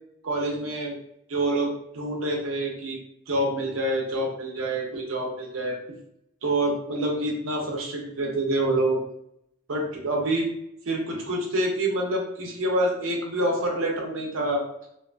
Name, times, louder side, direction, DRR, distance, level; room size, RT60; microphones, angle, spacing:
voice 1, 0.2-1.0 1.3-3.0 3.3-5.8 6.4-9.0 9.7-10.5 10.9-14.6, right 1 dB, 90° right, 0 dB, 0.7 m, -27 dB
2.5 x 2.3 x 2.4 m, 0.76 s
head